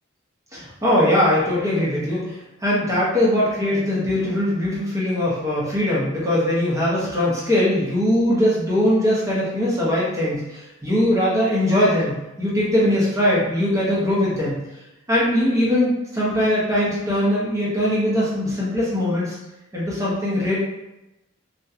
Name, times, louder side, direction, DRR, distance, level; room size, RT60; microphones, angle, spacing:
voice 1, 0.5-14.6 15.1-19.4 19.7-20.6, left 1 dB, 15° right, -7 dB, 0.6 m, -21 dB
2.7 x 2.1 x 2.3 m, 0.96 s
head